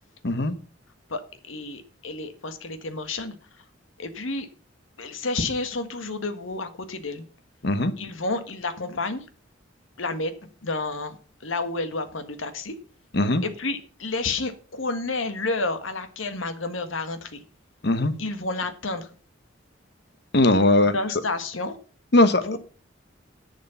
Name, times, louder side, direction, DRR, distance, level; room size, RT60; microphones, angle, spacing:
voice 1, 0.2-0.5 7.6-7.9 13.1-13.4 17.8-18.1 20.3-20.9 22.1-22.6, left 2 dB, 55° left, 12 dB, 1.0 m, -19 dB
voice 2, 1.1-3.6 4.0-4.5 5.0-7.2 8.0-9.3 10.0-10.3 10.6-12.7 13.4-17.4 18.2-19.1 20.9-21.7 22.4-22.6, left 3 dB, 85° left, 9 dB, 1.6 m, -30 dB
11.0 x 6.5 x 7.0 m, 0.40 s
head